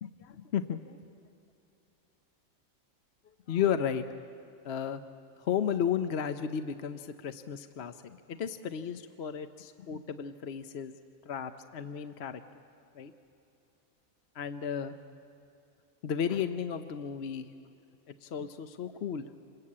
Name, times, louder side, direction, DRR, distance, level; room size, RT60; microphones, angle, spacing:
voice 1, 0.0-1.0 3.5-4.2 4.6-5.0 5.4-10.9 11.3-12.4 12.9-13.1 14.3-14.9 16.0-17.5 18.1-19.3, left 8 dB, 55° left, 9 dB, 0.8 m, -34 dB
27.0 x 21.5 x 8.6 m, 2.7 s
omnidirectional pair, 1.6 m